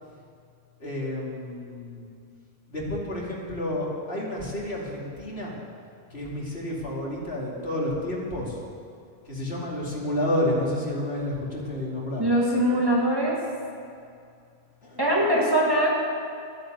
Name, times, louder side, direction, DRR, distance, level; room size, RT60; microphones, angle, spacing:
voice 1, 0.8-2.1 2.7-5.6 6.1-8.6 9.2-12.3 14.8-15.1, left 1 dB, 70° left, -4 dB, 3.0 m, -30 dB
voice 2, 12.2-13.4 15.0-15.9, right 1 dB, 20° right, -3 dB, 2.0 m, -22 dB
12.0 x 10.5 x 7.9 m, 2.4 s
omnidirectional pair, 1.1 m